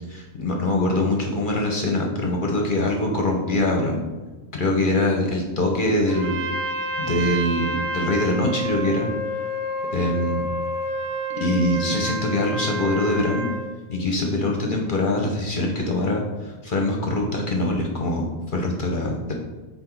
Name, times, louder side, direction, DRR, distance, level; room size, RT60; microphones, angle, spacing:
voice 1, 0.1-4.0 4.6-6.5 7.0-9.1 9.9-10.5 11.4-13.5 13.9-19.3, left 1 dB, 50° left, 1 dB, 0.9 m, -23 dB
Trumpet, 6.1-13.7, right 1 dB, 20° right, 0.8 m, -29 dB
5.9 x 4.2 x 4.5 m, 1.2 s
omnidirectional pair, 1.2 m